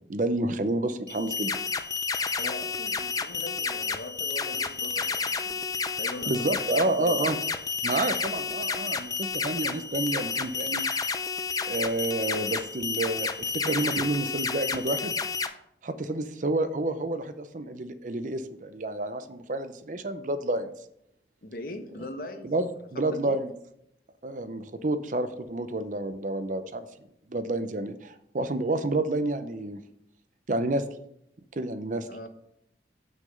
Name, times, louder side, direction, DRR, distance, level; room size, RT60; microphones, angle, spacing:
voice 1, 0.1-1.6 6.3-7.4 7.8-10.8 11.7-15.1 15.8-20.7 22.4-23.5 24.2-26.9 27.3-29.8 30.5-30.9 31.6-32.1, right 2 dB, 45° right, 11 dB, 0.6 m, -29 dB
sound 1, 1.1-15.5, left 5 dB, 20° left, 0.4 m, -31 dB
voice 2, 2.4-7.4 21.4-22.5 22.9-23.4 32.1-32.3, left 2 dB, 50° left, 7 dB, 1.0 m, -40 dB
6.1 x 5.7 x 6.6 m, 0.77 s
head